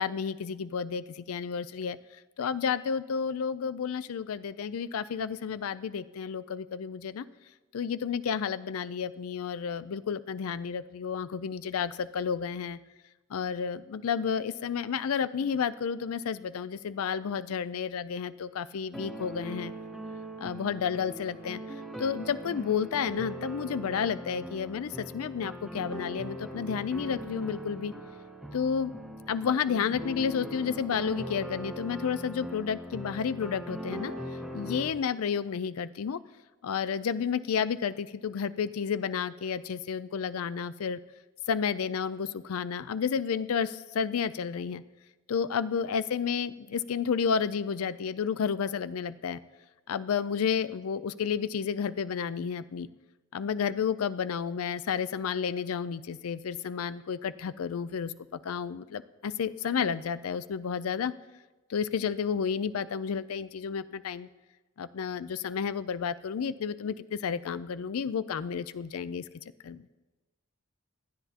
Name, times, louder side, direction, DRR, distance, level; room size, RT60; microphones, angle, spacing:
voice 1, 0.0-2.0 2.4-7.2 7.7-12.8 13.3-19.7 20.4-21.6 22.0-27.9 28.5-28.9 29.3-34.1 34.5-36.2 36.6-41.0 41.5-44.8 45.3-49.4 49.9-52.9 53.3-61.1 61.7-64.3 64.8-69.2 69.6-69.8, left 7 dB, 90° left, 15 dB, 0.4 m, -31 dB
sound 1, 18.9-34.9, right 1 dB, ahead, 1.4 m, -40 dB
26.0 x 10.0 x 2.9 m, 1.1 s
head